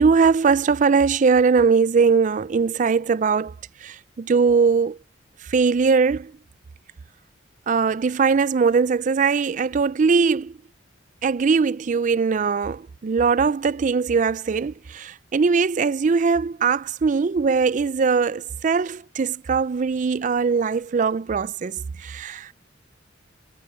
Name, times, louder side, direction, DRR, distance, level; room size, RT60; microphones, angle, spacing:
voice 1, 0.0-3.6 3.8-5.0 5.4-6.3 7.7-10.6 11.2-22.5, right 5 dB, 40° right, 0.4 m, -20 dB
head